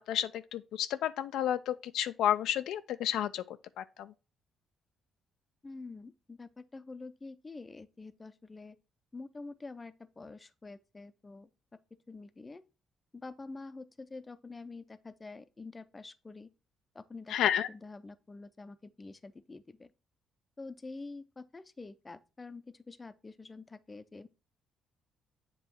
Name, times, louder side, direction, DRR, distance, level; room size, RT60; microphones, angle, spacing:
voice 1, 0.0-4.1 17.3-17.7, left 10 dB, 85° left, 0.3 m, -31 dB
voice 2, 5.6-8.8 9.1-11.5 12.1-12.6 13.1-16.5 16.9-17.4 17.7-19.9 20.6-24.3, left 3 dB, 25° left, 0.5 m, -47 dB
7.7 x 3.0 x 4.3 m
cardioid pair, 90°, 0 cm